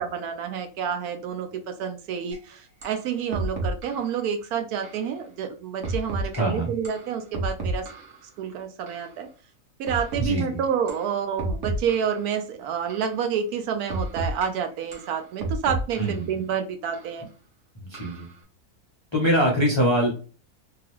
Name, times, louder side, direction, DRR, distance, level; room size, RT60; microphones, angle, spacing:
voice 1, 0.0-7.8 8.4-9.3 9.8-17.3, right 7 dB, 80° right, 7 dB, 1.1 m, -29 dB
sound 1, 2.3-2.4 2.8-3.0 3.3-4.1 4.8-5.1 5.8-6.4 6.8-8.2 8.9-9.1 9.9-10.4 10.9-11.1 11.4-12.2 12.9-13.2 13.9-14.5 14.9-16.2 16.9-17.1 17.9-18.3, right 2 dB, 55° right, 1.1 m, -31 dB
voice 2, 6.3-6.7 10.2-10.6 16.0-16.3 17.7-18.3 19.1-20.1, equal, 45° left, -2 dB, 0.3 m, -23 dB
2.9 x 2.3 x 3.0 m, 0.36 s
omnidirectional pair, 1.6 m